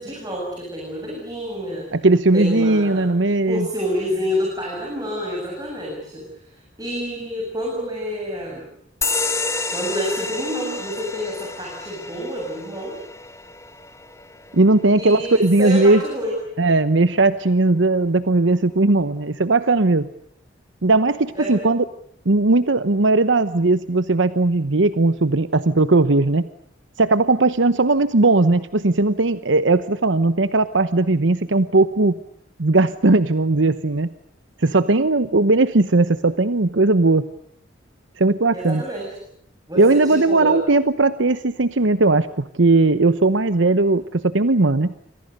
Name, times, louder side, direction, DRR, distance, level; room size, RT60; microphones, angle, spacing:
voice 1, 0.0-1.8 2.3-3.1 3.5-8.6 9.7-13.0 15.0-16.3 21.3-21.6 38.5-39.1 39.7-40.6, equal, 20° right, -2 dB, 7.9 m, -28 dB
voice 2, 1.9-3.7 14.5-16.0 16.6-20.1 20.8-21.8 22.3-26.5 27.0-32.2 32.6-34.1 34.6-37.2 38.2-38.8 39.7-44.9, right 2 dB, 75° right, 13 dB, 1.0 m, -18 dB
sound 1, 9.0-16.1, left 3 dB, 15° left, 1.5 m, -30 dB
29.0 x 26.0 x 6.7 m, 0.67 s
head